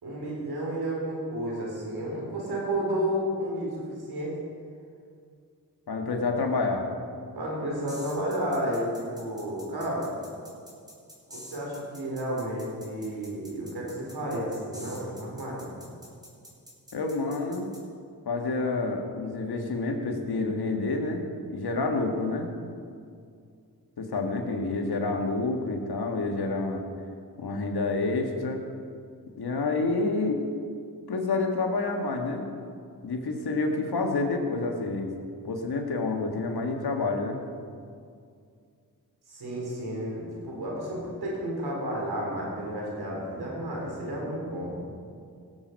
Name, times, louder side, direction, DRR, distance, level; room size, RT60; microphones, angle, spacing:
voice 1, 0.0-3.8 4.1-4.3 7.3-10.1 11.3-15.7 39.3-44.7, right 1 dB, 85° right, -3 dB, 3.9 m, -32 dB
voice 2, 5.9-6.9 16.9-17.7 18.2-21.2 21.5-22.5 24.0-26.8 27.4-28.6 29.4-30.4 31.1-32.4 33.0-35.1 35.4-37.4, left 3 dB, 80° left, 3 dB, 1.6 m, -28 dB
sound 1, 7.9-17.8, equal, 10° right, 3.4 m, -47 dB
18.0 x 7.8 x 5.3 m, 2.3 s
cardioid pair, 50°, 37 cm